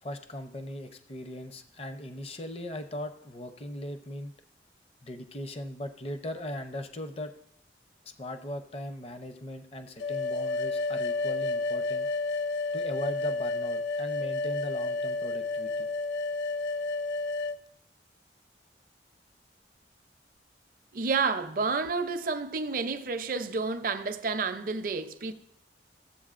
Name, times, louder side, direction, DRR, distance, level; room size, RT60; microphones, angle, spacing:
voice 1, 0.0-4.3 5.0-7.3 8.0-12.1 12.7-15.9, left 1 dB, 35° left, 0.6 m, -39 dB
sound 1, 10.0-17.6, left 3 dB, 75° left, 0.3 m, -31 dB
voice 2, 20.9-25.3, right 4 dB, 50° right, 0.5 m, -30 dB
14.5 x 7.8 x 2.5 m
head